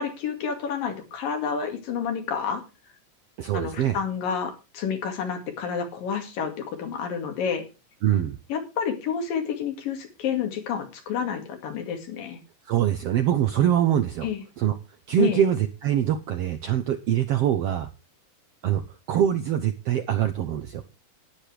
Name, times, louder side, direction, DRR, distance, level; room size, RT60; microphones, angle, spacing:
voice 1, 0.0-2.6 3.5-7.6 8.5-12.4 14.2-14.4 15.2-15.4, left 7 dB, 85° left, 5 dB, 4.0 m, -29 dB
voice 2, 3.4-4.0 8.0-8.4 12.7-14.3 14.6-14.8 15.1-17.9 18.6-18.8 19.1-20.8, right 10 dB, 75° right, 8 dB, 1.4 m, -23 dB
11.0 x 10.0 x 5.0 m, 0.30 s
omnidirectional pair, 3.9 m